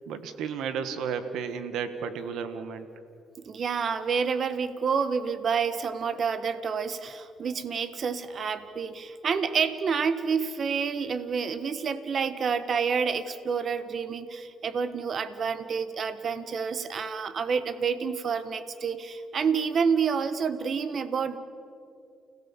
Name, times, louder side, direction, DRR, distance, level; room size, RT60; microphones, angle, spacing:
voice 1, 0.1-2.9, right 6 dB, 85° right, 10 dB, 1.7 m, -33 dB
voice 2, 3.4-21.4, right 6 dB, 50° right, 12 dB, 1.4 m, -28 dB
29.5 x 17.0 x 7.4 m, 2.6 s
cardioid pair, 90°, 0 cm